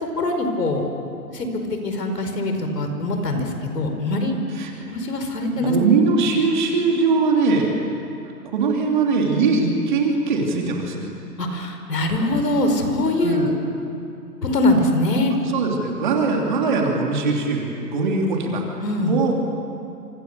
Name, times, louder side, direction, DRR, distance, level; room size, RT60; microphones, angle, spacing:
voice 1, 0.1-0.9 1.3-1.5 1.8-4.4 4.8-5.7 11.4-13.6 14.4-15.3 18.8-19.2, left 2 dB, 75° left, 5 dB, 5.0 m, -22 dB
voice 2, 5.6-7.7 8.5-11.1 13.2-13.5 15.4-18.7 19.1-19.3, right 4 dB, 30° right, 0 dB, 3.1 m, -21 dB
28.5 x 25.5 x 6.8 m, 2.7 s
hypercardioid pair, 170°, 49 cm